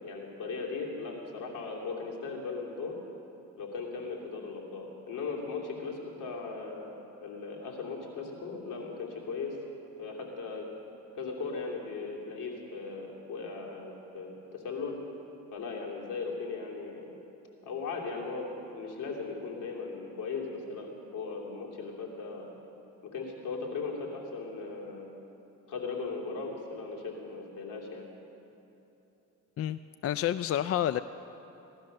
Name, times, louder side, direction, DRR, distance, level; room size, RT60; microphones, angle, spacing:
voice 1, 0.0-3.0 3.6-6.9 7.2-9.6 10.0-10.7 11.1-15.0 15.5-17.2 17.6-18.5 18.7-22.5 23.0-25.1 25.7-28.1, left 4 dB, 75° left, -1 dB, 2.9 m, -38 dB
voice 2, 29.6-31.0, left 11 dB, 45° left, 13 dB, 0.4 m, -29 dB
17.5 x 12.5 x 6.6 m, 3.0 s
cardioid pair, 90°, 32 cm